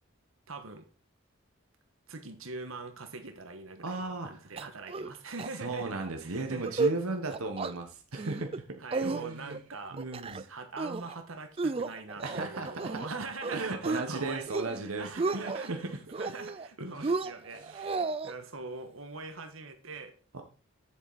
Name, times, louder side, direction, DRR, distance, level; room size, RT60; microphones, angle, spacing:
voice 1, 0.5-0.9 2.1-7.2 8.8-10.0 10.3-14.5 14.7-20.1, right 3 dB, 70° right, 6 dB, 1.4 m, -43 dB
voice 2, 3.8-4.5 5.6-9.6 9.9-10.4 12.2-13.1 13.5-15.8 16.8-17.2 17.6-17.9 20.3-20.4, right 3 dB, 90° right, 4 dB, 1.2 m, -36 dB
sound 1, 4.6-5.1 5.4-5.5 5.8-6.1 6.5-7.0 7.3-7.7 8.1-8.6 8.9-9.6 10.0-10.4 10.8-11.2 11.6-13.1 13.4-14.0 14.4-14.8 15.0-15.7 16.1-16.7 17.0-18.3, right 3 dB, 25° right, 0.4 m, -33 dB
8.1 x 7.5 x 4.2 m, 0.37 s
head